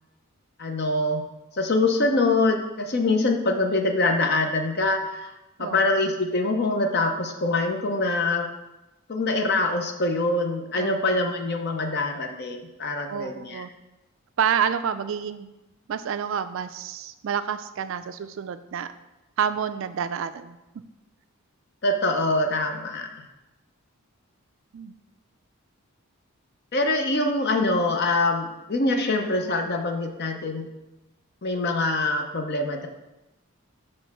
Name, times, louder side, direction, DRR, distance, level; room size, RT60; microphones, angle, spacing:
voice 1, 0.6-1.2 1.5-5.3 5.6-8.5 9.1-13.6 21.8-23.1 26.7-30.7 31.4-32.9, left 2 dB, 45° left, 5 dB, 0.7 m, -24 dB
voice 2, 10.8-11.2 13.1-13.7 14.4-15.5 15.9-18.9 19.4-20.6 24.7-24.9, right 7 dB, 60° right, 12 dB, 0.3 m, -28 dB
6.2 x 3.2 x 5.9 m, 1.0 s
head